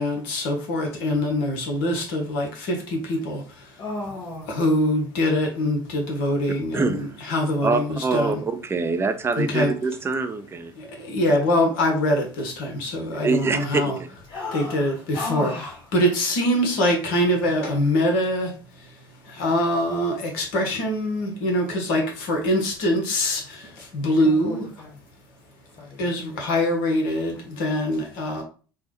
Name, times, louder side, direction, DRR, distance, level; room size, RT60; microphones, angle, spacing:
voice 1, 0.0-3.7 4.5-8.4 9.4-9.7 10.8-14.0 14.5-15.5 15.9-18.6 19.2-24.7 26.0-28.4, left 1 dB, 65° left, 0.9 m, -24 dB
voice 2, 3.8-4.5 14.3-15.9 21.3-21.5 23.8-25.0 25.8-26.2, left 2 dB, 45° left, 0.8 m, -35 dB
voice 3, 6.7-7.1 7.6-10.7 11.0-11.1 13.2-14.1, right 4 dB, 20° right, 0.4 m, -25 dB
3.4 x 2.1 x 3.0 m
hypercardioid pair, 65°, 12 cm